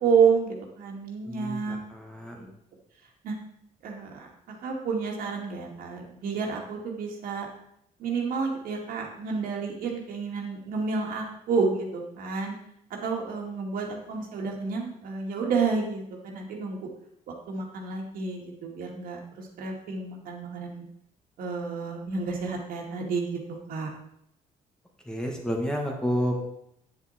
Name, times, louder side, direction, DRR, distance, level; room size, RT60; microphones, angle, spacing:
voice 1, 0.0-1.8 2.4-2.5 3.2-3.3 3.8-7.5 8.0-12.5 13.0-16.9 17.3-20.8 21.4-23.3 23.7-23.9, right 5 dB, 80° right, 0 dB, 2.2 m, -30 dB
voice 2, 1.2-2.5 25.0-26.3, equal, 5° left, 1 dB, 1.6 m, -30 dB
9.0 x 8.5 x 4.3 m, 0.73 s
cardioid pair, 160°, 15 cm